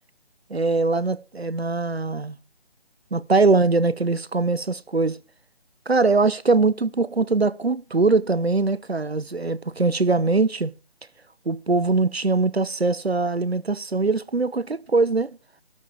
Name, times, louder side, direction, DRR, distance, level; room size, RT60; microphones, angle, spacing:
voice 1, 0.5-2.4 3.1-5.2 5.9-10.7 11.5-15.3, right 3 dB, 85° right, 1.0 m, -22 dB
13.0 x 9.0 x 4.7 m
figure-of-eight pair, 155°, 31 cm